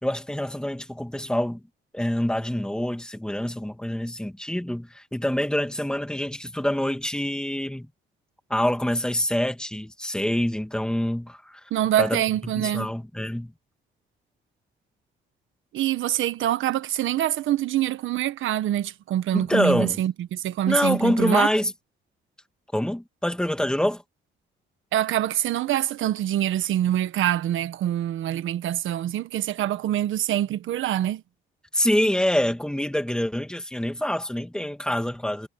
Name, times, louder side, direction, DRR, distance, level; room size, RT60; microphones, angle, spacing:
voice 1, 0.0-1.6 1.9-7.9 8.5-11.6 12.0-13.5 19.3-20.0 20.7-21.7 22.7-24.0 31.7-35.5, left 1 dB, 5° left, 2.6 m, -26 dB
voice 2, 11.7-12.9 15.7-21.5 24.9-31.2, right 12 dB, 80° right, 1.5 m, -25 dB
cardioid pair, 90°, 20 cm